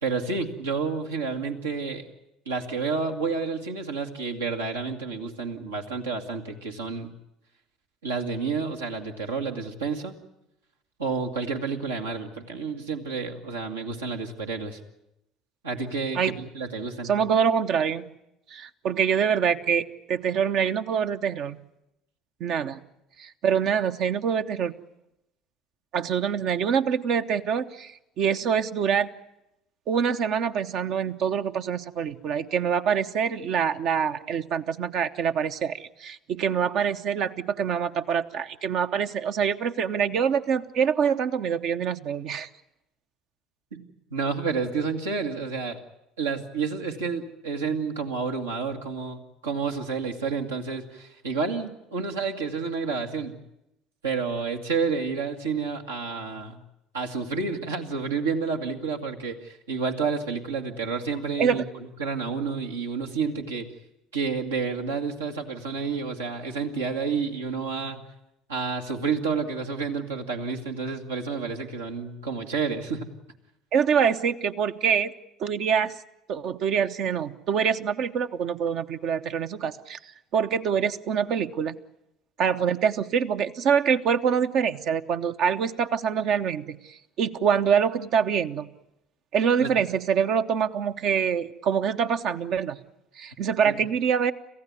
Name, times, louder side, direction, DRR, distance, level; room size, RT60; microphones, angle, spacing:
voice 1, 0.0-2.0 2.5-7.1 8.0-10.2 11.0-14.8 15.6-17.1 43.7-43.8 44.1-45.8 46.2-53.4 54.0-56.6 56.9-61.6 62.0-63.7 64.1-68.0 68.5-73.1 89.6-89.7 93.6-93.8, right 5 dB, 75° right, 2 dB, 2.0 m, -30 dB
voice 2, 17.0-18.1 18.5-21.6 22.4-22.8 23.2-24.7 25.9-29.1 29.9-42.5 61.4-61.6 73.7-75.1 75.4-75.9 76.3-80.0 80.3-81.8 82.4-88.7 89.3-92.8 93.2-94.3, right 7 dB, 50° right, 9 dB, 0.9 m, -25 dB
27.0 x 15.5 x 9.5 m, 0.88 s
figure-of-eight pair, 60°, 0 cm